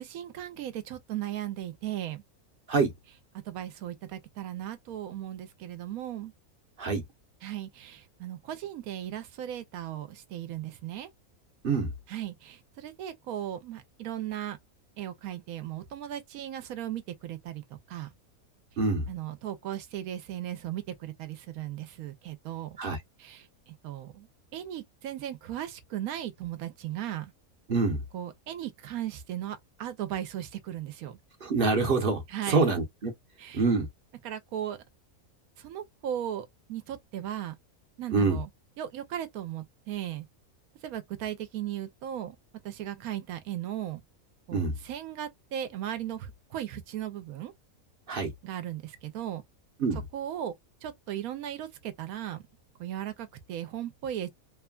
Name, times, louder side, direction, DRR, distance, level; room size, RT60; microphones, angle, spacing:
voice 1, 0.0-2.2 3.5-6.3 7.4-11.1 12.1-14.6 15.0-18.1 19.1-22.8 23.2-24.3 24.5-27.3 28.1-31.2 32.3-32.8 33.4-33.6 34.2-34.8 35.6-37.5 38.0-38.5 38.8-40.2 40.8-42.4 42.6-44.0 44.5-47.5 48.4-49.4 49.9-50.5 50.8-52.4 52.8-54.3, right 11 dB, 80° right, 1.1 m, -37 dB
voice 2, 27.7-28.0 31.4-33.1 33.5-33.9 38.1-38.4 44.5-44.7 48.1-48.3 49.8-50.0, right 4 dB, 45° right, 0.8 m, -26 dB
3.1 x 2.2 x 2.2 m
omnidirectional pair, 1.5 m